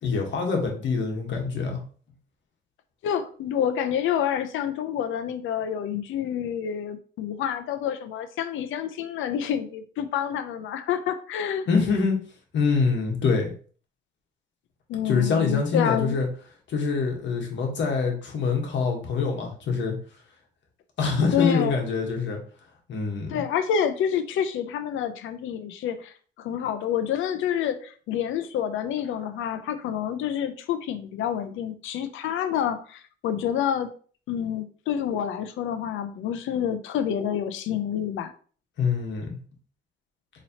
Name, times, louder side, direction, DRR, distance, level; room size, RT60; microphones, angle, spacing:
voice 1, 0.0-1.8 11.7-12.2 12.5-13.5 15.0-16.3 16.7-19.9 21.0-22.4 22.9-23.4 38.8-39.3, left 4 dB, 70° left, 2 dB, 1.3 m, -25 dB
voice 2, 3.0-11.7 14.9-16.2 21.3-21.7 23.3-33.9 34.3-38.3, left 9 dB, 85° left, 10 dB, 0.6 m, -28 dB
4.2 x 3.0 x 2.8 m, 0.42 s
cardioid pair, 90°, 20 cm